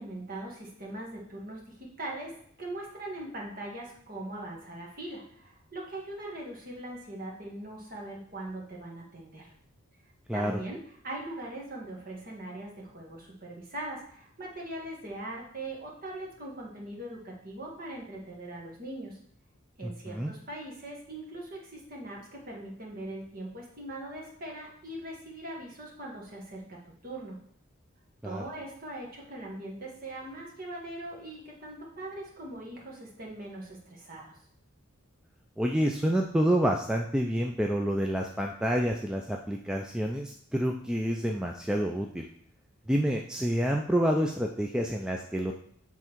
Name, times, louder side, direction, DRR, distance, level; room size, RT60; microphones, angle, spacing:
voice 1, 0.0-2.3 2.6-9.5 10.3-10.8 11.0-19.2 19.8-26.8 27.0-27.4 28.2-34.3, right 1 dB, 40° right, -2 dB, 1.7 m, -41 dB
voice 2, 19.8-20.3 28.2-28.4 35.6-42.3 42.9-45.5, equal, 5° right, 1 dB, 0.3 m, -28 dB
7.7 x 3.6 x 4.5 m, 0.66 s
head